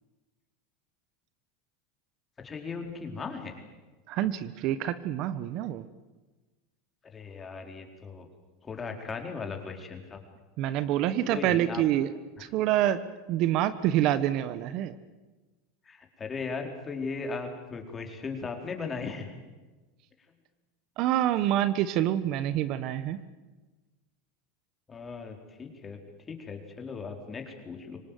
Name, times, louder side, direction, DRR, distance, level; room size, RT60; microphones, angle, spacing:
voice 1, 2.4-3.6 7.0-8.3 8.6-10.2 11.3-11.8 15.8-19.3 24.9-26.0 26.3-28.0, left 4 dB, 25° left, 4 dB, 4.5 m, -37 dB
voice 2, 4.1-5.9 10.6-12.1 12.4-13.0 13.3-14.9 21.0-23.2, right 12 dB, 55° right, 14 dB, 1.3 m, -27 dB
25.0 x 19.0 x 9.3 m, 1.2 s
supercardioid pair, 110°, 0 cm